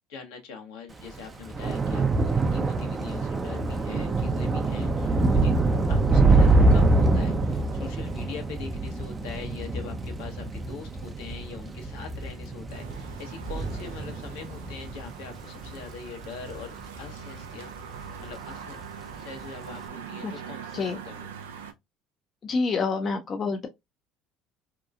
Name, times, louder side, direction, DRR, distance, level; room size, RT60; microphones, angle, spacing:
voice 1, 0.1-5.5 5.9-18.8 19.2-21.3, left 5 dB, 80° left, 0.9 m, -42 dB
Thunder / Rain, 1.0-17.6 17.9-18.4 18.6-18.8, right 2 dB, 30° right, 0.5 m, -25 dB
sound 1, 12.7-21.7, right 7 dB, 90° right, 0.4 m, -42 dB
voice 2, 22.4-23.7, left 4 dB, 40° left, 0.5 m, -27 dB
2.8 x 2.3 x 2.3 m
hypercardioid pair, 70°, 0 cm